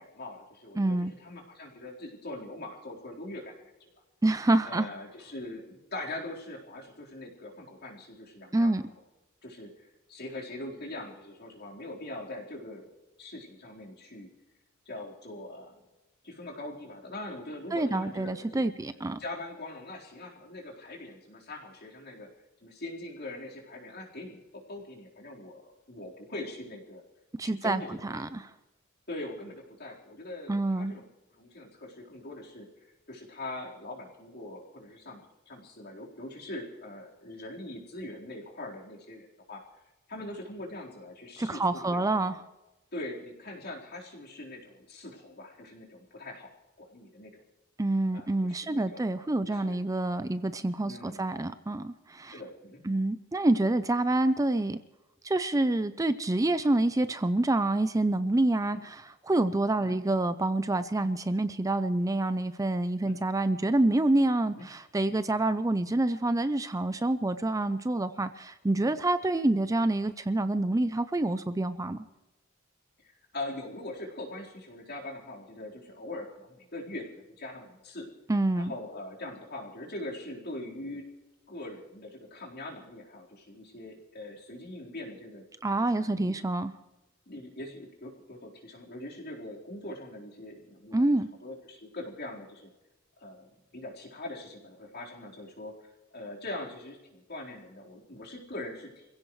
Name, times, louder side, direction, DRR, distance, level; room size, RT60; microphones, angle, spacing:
voice 1, 0.0-3.5 3.8-3.9 4.6-8.7 9.4-12.9 13.2-14.3 14.9-15.8 16.2-18.7 19.2-22.3 22.6-27.0 27.4-28.2 29.1-31.1 31.4-32.7 33.1-39.6 40.1-42.3 42.9-47.4 48.1-49.0 49.4-49.8 50.8-51.3 52.3-52.8 58.7-58.8 59.8-60.0 63.0-63.2 64.5-64.6 73.0-78.1 78.6-81.1 81.5-85.4 85.9-86.3 87.3-91.1 91.4-92.7 93.2-95.8 96.1-99.1, left 1 dB, 50° left, -2 dB, 4.2 m, -42 dB
voice 2, 0.8-1.1 4.2-4.9 8.5-8.8 17.7-19.2 27.4-28.5 30.5-30.9 41.4-42.4 47.8-52.3 52.9-54.8 55.2-72.1 78.3-78.7 85.6-86.7 90.9-91.3, right 2 dB, 15° right, 12 dB, 0.5 m, -27 dB
27.5 x 16.0 x 3.2 m, 1.0 s
head